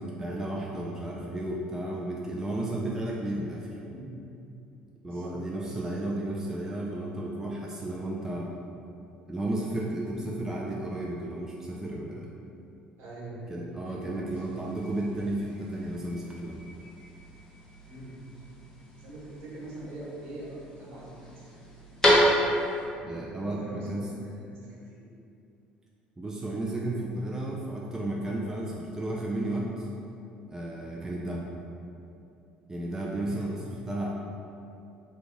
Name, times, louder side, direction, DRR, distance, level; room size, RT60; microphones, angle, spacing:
voice 1, 0.0-3.7 5.0-8.5 9.3-12.3 13.5-16.6 23.1-24.1 26.2-29.9 30.5-31.5 32.7-34.1, right 1 dB, 10° right, -3 dB, 0.4 m, -33 dB
voice 2, 3.7-4.2 5.0-5.8 13.0-13.4 13.8-14.4 17.8-18.2 19.0-21.8 22.9-25.0 33.1-33.4, right 1 dB, 60° right, -7 dB, 1.1 m, -44 dB
sound 1, 14.3-22.8, equal, 10° left, 1.0 m, -31 dB
2.9 x 2.2 x 3.8 m, 2.6 s
hypercardioid pair, 60°, 4 cm